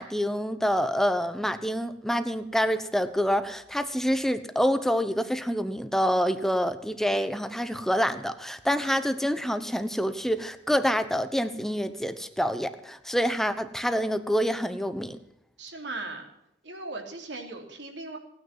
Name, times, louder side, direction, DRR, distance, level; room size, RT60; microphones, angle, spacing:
voice 1, 0.0-15.2, equal, ahead, 10 dB, 1.0 m, -27 dB
voice 2, 15.6-16.2 16.6-18.2, right 2 dB, 75° right, 2 dB, 3.3 m, -38 dB
18.0 x 9.5 x 7.5 m, 0.79 s
head